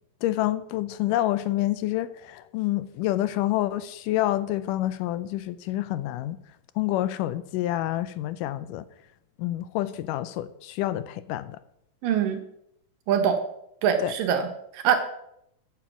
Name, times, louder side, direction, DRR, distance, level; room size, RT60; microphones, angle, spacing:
voice 1, 0.2-6.4 6.8-8.9 9.4-11.6 14.0-14.1, left 14 dB, 80° left, 2.1 m, -28 dB
voice 2, 12.0-12.4 13.1-13.4 13.8-15.0, right 8 dB, 80° right, 2.7 m, -23 dB
14.0 x 7.3 x 6.0 m
omnidirectional pair, 3.9 m